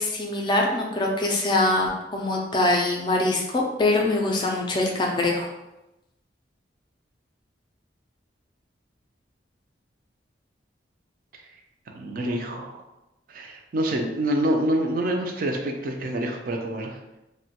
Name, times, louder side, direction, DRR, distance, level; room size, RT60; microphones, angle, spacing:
voice 1, 0.0-5.5, left 2 dB, 25° left, 1 dB, 0.4 m, -23 dB
voice 2, 11.9-12.8 13.3-17.2, right 1 dB, 50° right, 2 dB, 0.4 m, -27 dB
2.9 x 2.1 x 2.8 m, 0.95 s
head